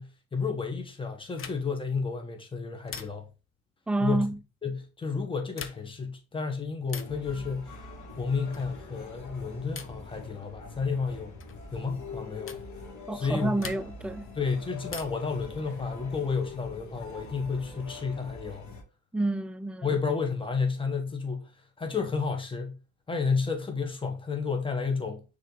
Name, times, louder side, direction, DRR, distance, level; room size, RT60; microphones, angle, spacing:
voice 1, 0.0-3.3 4.0-4.3 4.6-7.8 8.2-11.3 11.7-12.6 13.1-13.7 14.4-18.7 19.8-21.5 21.8-22.8 23.1-25.2, left 5 dB, 15° left, 1.3 m, -31 dB
sound 1, 1.3-1.9 2.9-3.5 5.4-6.1 6.9-7.3 8.5-8.8 9.7-10.1 11.4-11.6 12.5-12.7 13.6-14.1 14.9-15.4 16.8-17.5, left 6 dB, 45° left, 0.9 m, -43 dB
voice 2, 3.9-4.4 13.1-14.3 19.1-19.9, right 2 dB, 5° right, 0.3 m, -29 dB
sound 2, 7.0-18.8, left 3 dB, 75° left, 1.8 m, -44 dB
6.5 x 3.8 x 3.9 m
cardioid pair, 90°, 30 cm